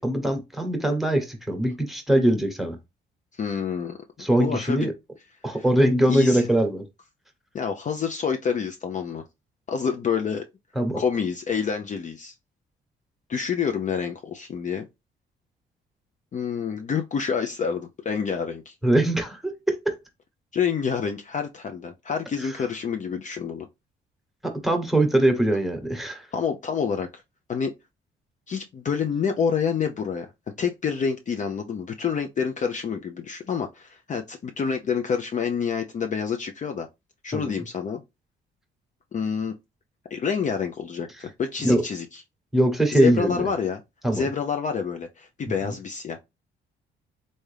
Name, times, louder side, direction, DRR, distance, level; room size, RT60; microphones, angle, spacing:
voice 1, 0.0-2.8 4.2-4.9 5.4-6.8 10.8-11.0 18.8-20.0 22.4-22.5 24.4-26.3 37.3-37.6 41.6-41.8 42.5-43.5 44.0-44.3 45.6-45.7, right 1 dB, ahead, 1.1 m, -22 dB
voice 2, 3.3-4.9 6.1-6.4 7.5-9.2 9.7-10.4 10.9-12.3 13.3-14.9 16.3-18.7 20.5-23.7 26.3-27.1 27.5-27.7 28.5-30.3 30.6-36.9 37.2-38.0 39.1-39.5 40.1-42.1 42.9-43.8 44.1-46.2, left 6 dB, 40° left, 0.5 m, -28 dB
3.4 x 2.7 x 3.3 m
cardioid pair, 90°, 20 cm